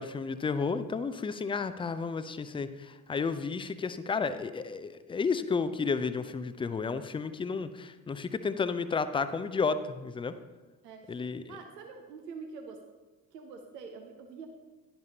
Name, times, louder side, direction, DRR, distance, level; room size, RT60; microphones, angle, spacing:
voice 1, 0.0-10.3 11.1-11.6, left 5 dB, 10° left, 12 dB, 0.4 m, -32 dB
voice 2, 10.8-12.8 13.3-14.5, right 5 dB, 80° right, 4 dB, 0.8 m, -46 dB
11.0 x 10.5 x 2.8 m, 1.2 s
figure-of-eight pair, 45°, 48 cm